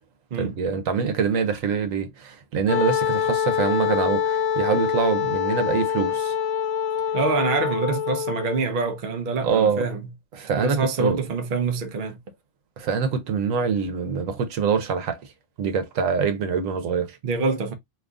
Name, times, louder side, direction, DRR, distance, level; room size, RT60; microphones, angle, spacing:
voice 1, 0.4-6.3 9.4-9.9 10.3-11.2 12.8-15.2 15.6-17.2, right 6 dB, 85° right, 1.2 m, -24 dB
Wind instrument woodwind instrument, 2.7-8.6, left 8 dB, 85° left, 1.0 m, -25 dB
voice 2, 7.1-10.1 10.6-12.2 17.2-17.7, right 4 dB, 50° right, 0.7 m, -25 dB
2.8 x 2.4 x 3.5 m
omnidirectional pair, 1.3 m